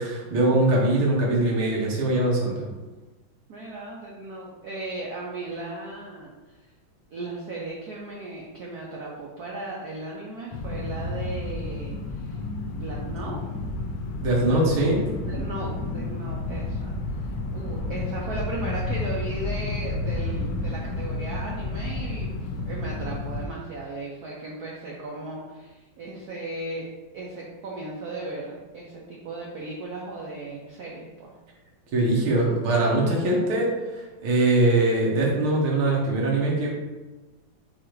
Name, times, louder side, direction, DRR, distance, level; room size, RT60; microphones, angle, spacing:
voice 1, 0.0-2.7 14.2-15.1 31.9-33.7 34.2-36.7, right 2 dB, 90° right, -3 dB, 1.9 m, -22 dB
voice 2, 3.5-6.3 7.1-12.4 12.7-13.4 15.3-16.9 17.2-26.9 27.1-31.3, right 2 dB, 70° right, -3 dB, 0.9 m, -36 dB
sound 1, 10.5-23.5, left 2 dB, 75° left, 1.1 m, -31 dB
4.7 x 2.4 x 4.4 m, 1.2 s
omnidirectional pair, 2.3 m